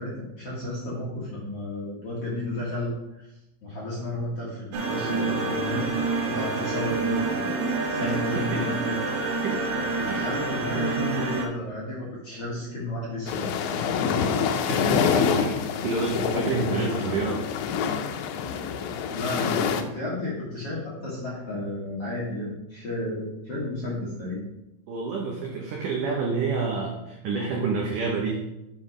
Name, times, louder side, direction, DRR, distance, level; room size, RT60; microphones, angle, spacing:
voice 1, 0.0-5.9 6.2-7.5 7.9-9.0 9.5-9.6 9.9-14.4 18.7-24.4, left 1 dB, 60° left, -6 dB, 1.6 m, -33 dB
sound 1, 4.7-11.5, right 3 dB, 70° right, 2.0 m, -27 dB
voice 2, 8.0-8.6 9.4-9.6 10.0-10.3 14.7-17.4 24.9-28.5, right 4 dB, 90° right, 0 dB, 1.8 m, -29 dB
sound 2, 13.3-19.8, left 6 dB, 85° left, 3.0 m, -26 dB
7.7 x 5.7 x 5.1 m, 0.94 s
omnidirectional pair, 5.1 m